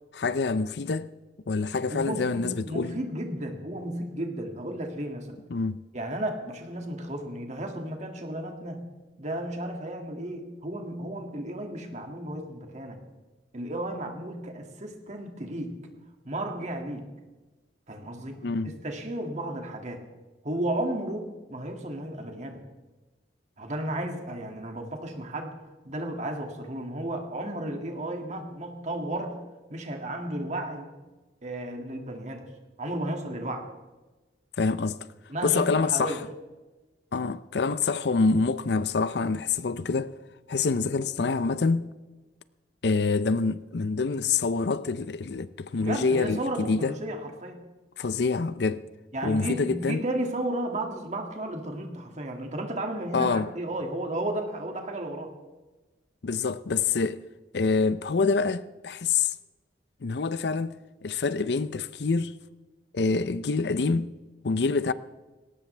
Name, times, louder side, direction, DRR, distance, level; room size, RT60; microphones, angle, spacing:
voice 1, 0.1-1.1 1.5-2.9 5.5-5.9 18.4-18.8 34.6-35.1 35.4-36.2 37.1-40.1 40.5-41.9 42.8-47.0 48.0-48.8 49.2-50.0 53.1-53.5 56.2-57.2 57.5-59.3 60.0-62.4 62.9-64.1 64.4-64.9, left 4 dB, 65° left, 0.6 m, -26 dB
voice 2, 1.9-5.4 5.9-8.8 9.2-13.0 13.5-15.7 16.2-17.1 17.9-18.4 18.8-20.0 20.4-22.6 23.6-25.5 25.8-29.4 29.7-30.9 31.4-32.5 32.8-33.7 35.3-36.2 45.8-47.6 49.1-55.3, right 1 dB, 40° right, 2.2 m, -33 dB
19.5 x 18.0 x 3.4 m
head